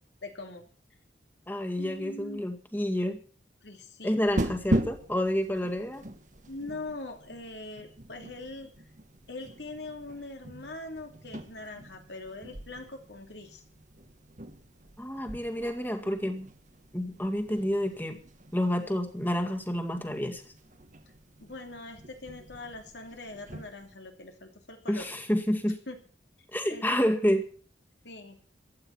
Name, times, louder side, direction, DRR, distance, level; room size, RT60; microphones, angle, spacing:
voice 1, 0.2-0.7 1.8-2.4 3.6-4.2 6.5-8.7 9.3-13.6 21.4-25.1 25.9-26.0 26.7-26.9 28.0-28.4, left 2 dB, 75° left, 4 dB, 2.9 m, -42 dB
voice 2, 1.5-3.2 4.0-6.0 15.0-16.5 16.9-18.2 18.5-20.4 24.9-25.8 26.5-27.5, equal, 10° left, 5 dB, 2.1 m, -29 dB
sound 1, 4.2-23.9, right 1 dB, 45° right, 1.6 m, -39 dB
15.5 x 11.5 x 5.9 m, 0.41 s
head